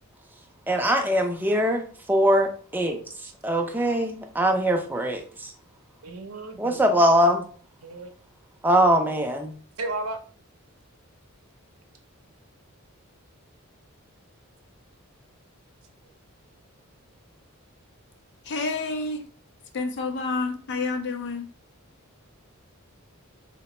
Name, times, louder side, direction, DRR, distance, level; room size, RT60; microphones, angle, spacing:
voice 1, 0.7-3.0 3.4-5.5 6.6-7.4 8.6-9.5, equal, 10° right, 3 dB, 0.4 m, -22 dB
voice 2, 6.0-6.8 7.8-8.1 9.8-10.2, right 2 dB, 85° right, 6 dB, 0.6 m, -33 dB
voice 3, 18.4-19.2 19.7-21.5, left 3 dB, 55° left, 5 dB, 0.5 m, -29 dB
2.8 x 2.1 x 4.1 m, 0.43 s
head